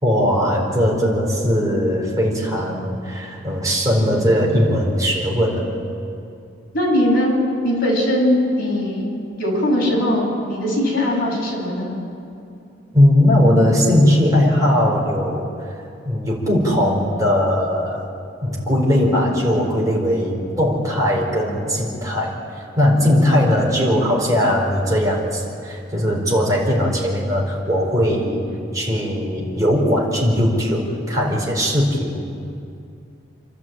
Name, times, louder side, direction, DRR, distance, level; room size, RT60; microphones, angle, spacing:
voice 1, 0.0-5.7 12.9-15.5 16.0-18.0 18.4-22.3 22.8-28.5 28.7-32.3, equal, 20° right, -3 dB, 4.5 m, -19 dB
voice 2, 6.7-7.3 7.6-9.1 9.4-11.9 22.9-23.1, left 1 dB, 50° left, -3 dB, 7.4 m, -20 dB
28.0 x 12.0 x 8.9 m, 2.6 s
head